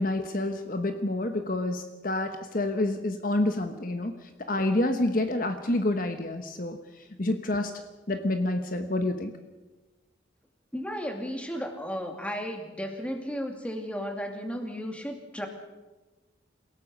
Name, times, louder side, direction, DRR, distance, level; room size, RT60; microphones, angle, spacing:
voice 1, 0.0-6.8 7.2-7.7 8.1-9.3, left 1 dB, 45° left, 7 dB, 1.2 m, -28 dB
voice 2, 10.7-15.5, equal, 5° left, 3 dB, 2.4 m, -34 dB
28.0 x 17.5 x 5.4 m, 1.2 s
head